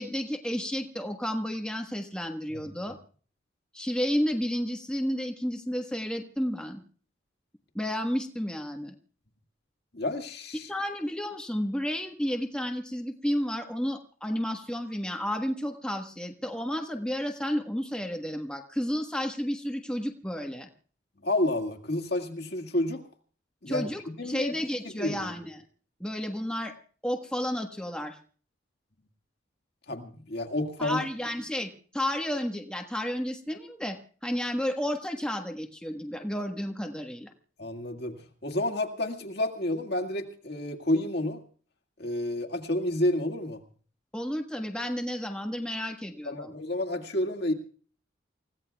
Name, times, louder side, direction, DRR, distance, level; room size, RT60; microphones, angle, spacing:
voice 1, 0.0-3.0 3.7-6.8 7.7-8.9 10.7-20.7 23.7-25.6 26.0-26.7 27.0-28.2 30.8-34.0 34.2-37.3 44.1-46.5, equal, 5° left, 3 dB, 1.3 m, -31 dB
voice 2, 9.9-10.7 21.2-23.0 23.6-24.5 24.8-25.3 29.9-31.0 37.6-38.2 38.4-41.4 42.0-43.6 46.3-47.5, left 1 dB, 60° left, 2 dB, 2.0 m, -30 dB
29.0 x 16.0 x 2.3 m, 0.44 s
head